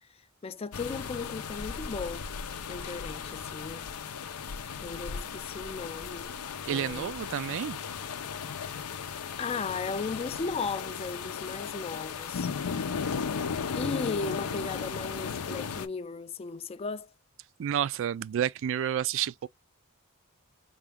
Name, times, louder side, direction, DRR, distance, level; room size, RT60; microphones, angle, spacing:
voice 1, 0.0-2.3 2.7-3.9 4.8-6.3 6.7-7.1 9.4-12.5 13.7-17.1, left 4 dB, 25° left, 0.3 m, -36 dB
sound 1, 0.7-15.9, left 6 dB, 85° left, 0.6 m, -36 dB
voice 2, 6.7-7.8 17.6-19.5, right 9 dB, 60° right, 0.3 m, -30 dB
3.9 x 2.3 x 3.4 m
head